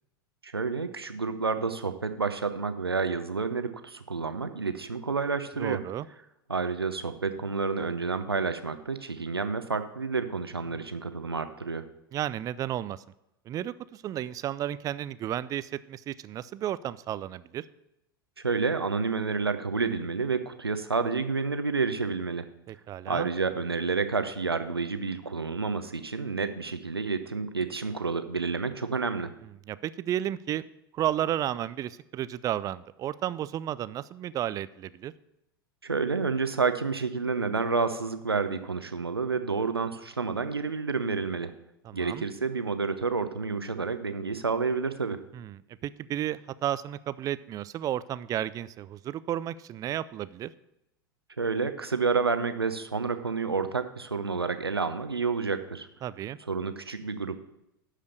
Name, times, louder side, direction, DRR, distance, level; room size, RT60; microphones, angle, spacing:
voice 1, 0.4-5.8 6.5-11.8 18.4-22.5 23.1-29.3 35.8-41.5 41.9-45.2 51.4-55.9 56.5-57.4, right 4 dB, 85° right, 9 dB, 0.8 m, -29 dB
voice 2, 5.6-6.1 10.7-10.8 12.1-13.0 13.5-17.6 22.7-23.3 29.7-30.7 30.9-35.1 41.8-42.2 45.3-50.5 56.0-56.4, right 12 dB, 30° right, 17 dB, 0.4 m, -33 dB
11.5 x 5.0 x 6.6 m, 0.84 s
figure-of-eight pair, 90°, 12 cm